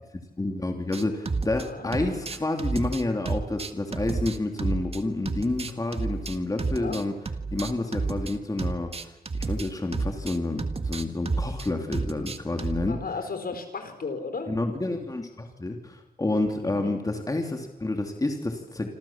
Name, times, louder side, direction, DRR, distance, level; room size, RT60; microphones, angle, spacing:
voice 1, 0.4-7.1 7.5-8.9 9.3-13.0 14.5-18.9, left 2 dB, 20° left, 3 dB, 3.0 m, -29 dB
sound 1, 0.9-1.6 1.9-5.0 5.3-8.3 8.6-12.9, right 3 dB, 35° right, 1.7 m, -30 dB
voice 2, 1.7-2.2 6.5-7.0 12.8-14.5 16.6-16.9, left 4 dB, 65° left, 8 dB, 4.6 m, -35 dB
27.5 x 26.5 x 7.3 m, 0.98 s
wide cardioid pair, 145°, 17 cm